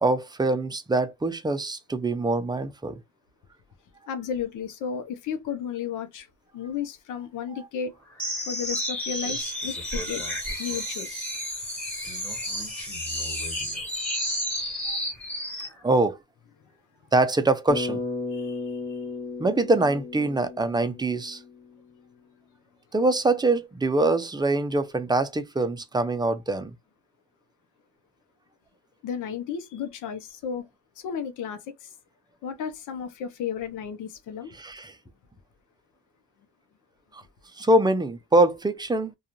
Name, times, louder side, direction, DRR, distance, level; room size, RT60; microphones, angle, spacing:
voice 1, 0.0-3.0 15.8-16.2 17.1-18.0 19.4-21.4 22.9-26.7 34.6-35.0 37.1-37.2 37.6-39.1, right 2 dB, 15° right, 0.4 m, -24 dB
voice 2, 4.1-6.3 6.5-7.9 8.5-10.2 10.6-11.3 18.3-19.0 29.0-30.6 31.0-31.9 32.4-34.5, left 7 dB, 85° left, 0.7 m, -33 dB
sound 1, 8.2-15.8, equal, 5° left, 1.3 m, -31 dB
Bass guitar, 17.7-21.8, left 3 dB, 25° left, 0.9 m, -34 dB
2.4 x 2.3 x 2.8 m
cardioid pair, 90°, 30 cm